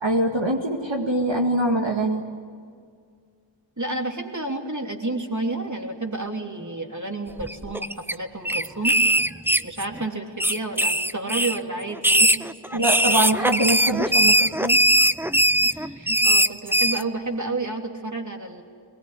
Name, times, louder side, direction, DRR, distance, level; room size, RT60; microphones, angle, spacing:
voice 1, 0.0-2.2 12.7-14.8, right 1 dB, 65° right, 0 dB, 2.1 m, -23 dB
voice 2, 3.8-9.0 9.6-12.3 12.8-12.9 15.6-18.6, right 2 dB, 40° right, 2 dB, 3.1 m, -30 dB
sound 1, 7.4-8.1 8.4-10.0 10.4-11.6 12.0-17.0, right 1 dB, 5° right, 0.6 m, -20 dB
23.0 x 20.5 x 9.9 m, 2.1 s
wide cardioid pair, 40°, 47 cm